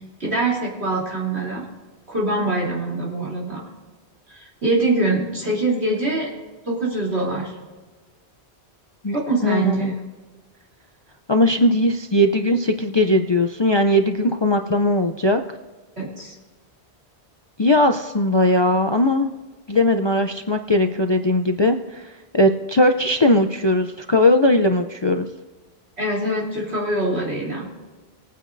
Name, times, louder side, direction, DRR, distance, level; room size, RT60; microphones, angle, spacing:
voice 1, 0.2-1.6 2.1-3.7 4.3-6.3 6.6-7.5 9.1-9.9 16.0-16.4 26.0-27.7, right 2 dB, 70° right, -4 dB, 3.6 m, -24 dB
voice 2, 9.4-9.9 11.3-15.4 17.6-19.3 19.7-25.3, left 1 dB, 35° left, 6 dB, 0.5 m, -19 dB
21.0 x 9.3 x 2.6 m, 1.3 s
omnidirectional pair, 1.1 m